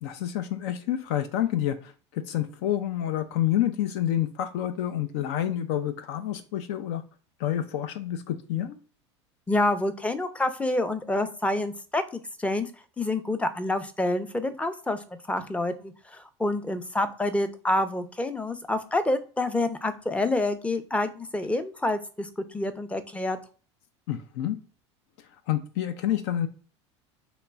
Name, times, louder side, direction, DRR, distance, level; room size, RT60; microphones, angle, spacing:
voice 1, 0.0-7.0 7.4-8.8 24.1-24.6 25.3-26.5, left 11 dB, 70° left, 10 dB, 0.5 m, -28 dB
voice 2, 9.5-12.7 13.0-15.0 15.3-23.4, left 2 dB, 10° left, 10 dB, 0.5 m, -28 dB
3.0 x 3.0 x 3.5 m, 0.41 s
hypercardioid pair, 85°, 15 cm